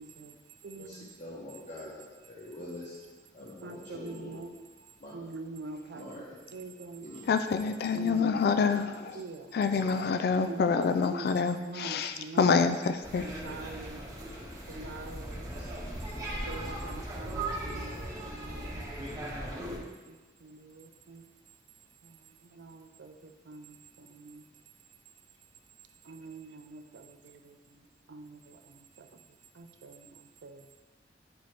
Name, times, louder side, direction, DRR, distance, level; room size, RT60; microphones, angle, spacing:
voice 1, 0.0-0.4 0.6-1.1 3.6-4.5 5.1-6.2 6.5-7.1 7.9-8.7 9.1-9.6 10.0-11.3 11.6-12.7 13.2-14.0 14.7-15.5 16.5-18.9 19.6-21.2 22.0-22.2 22.4-24.5 26.0-29.2 29.5-30.7, right 3 dB, 75° right, 0.5 m, -45 dB
voice 2, 0.8-1.9 2.3-3.0 3.3-4.5 5.0-5.1 5.9-6.4 7.0-7.2 7.5-7.7 8.5-9.1 14.2-14.6 15.5-15.9 16.4-17.5, left 1 dB, 45° left, 1.0 m, -46 dB
voice 3, 7.3-9.2 9.5-13.3, left 5 dB, 60° left, 0.3 m, -27 dB
sound 1, 13.0-19.8, right 1 dB, 20° right, 1.1 m, -38 dB
9.5 x 4.1 x 3.3 m
head